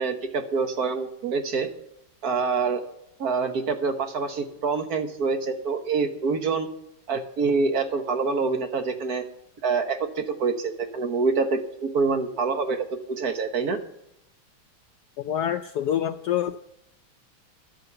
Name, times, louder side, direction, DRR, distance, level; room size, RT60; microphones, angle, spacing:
voice 1, 0.0-1.7 2.2-2.8 3.2-6.7 7.1-9.2 9.6-13.8, right 4 dB, 55° right, 6 dB, 1.4 m, -26 dB
voice 2, 15.2-16.6, left 10 dB, 75° left, 8 dB, 0.9 m, -26 dB
12.0 x 7.8 x 6.8 m, 0.79 s
omnidirectional pair, 2.2 m